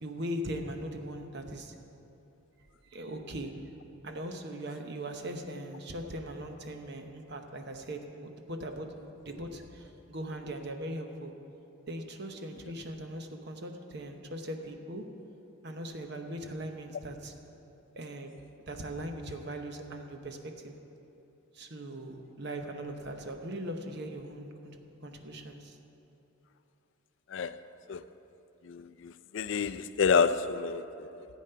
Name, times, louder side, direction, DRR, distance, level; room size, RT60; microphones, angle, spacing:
voice 1, 0.0-1.7 2.9-3.5 4.0-8.9 9.2-11.3 11.9-15.0 15.6-17.3 18.0-18.3 18.7-20.7 21.5-24.8 25.0-25.8, right 1 dB, 50° right, 0.9 m, -40 dB
voice 2, 28.6-31.3, left 5 dB, 60° left, 0.4 m, -29 dB
13.5 x 8.3 x 5.6 m
head